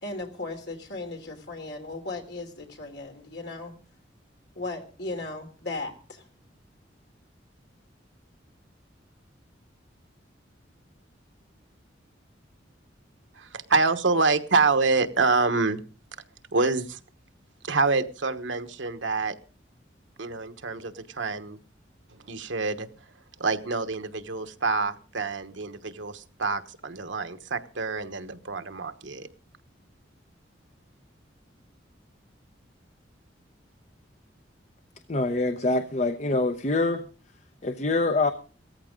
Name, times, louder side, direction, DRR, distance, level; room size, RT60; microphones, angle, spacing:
voice 1, 0.0-3.7 4.5-6.3, left 2 dB, 65° left, 3 dB, 3.2 m, -36 dB
voice 2, 13.3-15.8 16.5-17.0 17.6-19.3 20.2-21.6 22.3-22.9 23.4-29.3, right 4 dB, 85° right, 9 dB, 1.2 m, -26 dB
voice 3, 35.1-37.0 37.6-38.3, left 2 dB, 40° left, 9 dB, 0.8 m, -25 dB
17.0 x 14.5 x 3.8 m, 0.37 s
head